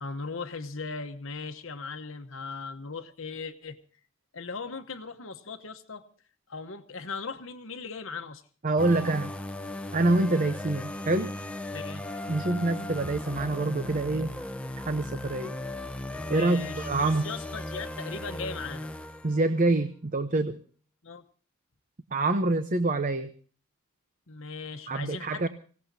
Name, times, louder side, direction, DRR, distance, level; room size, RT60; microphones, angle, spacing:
voice 1, 0.0-3.8 4.3-6.0 6.5-8.4 11.7-12.2 16.2-18.9 21.0-21.2 24.3-25.5, left 4 dB, 65° left, 6 dB, 1.0 m, -38 dB
voice 2, 8.6-9.3 9.9-11.3 12.3-14.3 14.8-15.5 16.3-17.2 19.2-20.6 22.1-23.3 24.9-25.5, right 2 dB, 35° right, 10 dB, 0.7 m, -26 dB
sound 1, 8.8-19.6, left 1 dB, 5° left, 0.7 m, -37 dB
25.5 x 17.0 x 2.7 m, 0.41 s
head